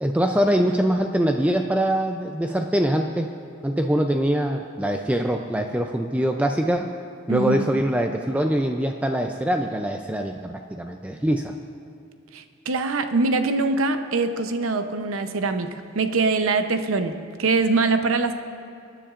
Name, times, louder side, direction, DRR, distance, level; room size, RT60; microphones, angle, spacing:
voice 1, 0.0-3.3 3.6-6.9 7.3-11.5, right 1 dB, 5° right, 4 dB, 0.3 m, -23 dB
voice 2, 7.3-7.6 12.3-15.7 15.9-18.3, right 3 dB, 90° right, 8 dB, 0.7 m, -23 dB
24.0 x 10.0 x 2.5 m, 2.7 s
head